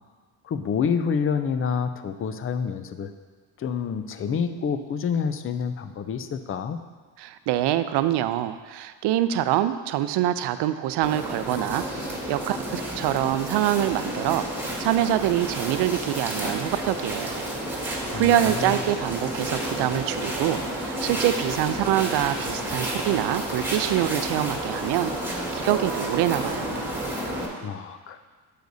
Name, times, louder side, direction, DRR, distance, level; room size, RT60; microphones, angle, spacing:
voice 1, 0.4-3.1 3.6-6.8 18.1-18.7 27.6-28.2, left 6 dB, 30° left, 10 dB, 0.5 m, -28 dB
voice 2, 7.2-11.8 12.3-14.5 14.8-17.4 17.8-26.8, right 12 dB, 70° right, 12 dB, 0.5 m, -25 dB
sound 1, 11.0-27.5, right 1 dB, 5° right, 1.9 m, -30 dB
9.0 x 6.8 x 2.7 m, 1.4 s
supercardioid pair, 80°, 42 cm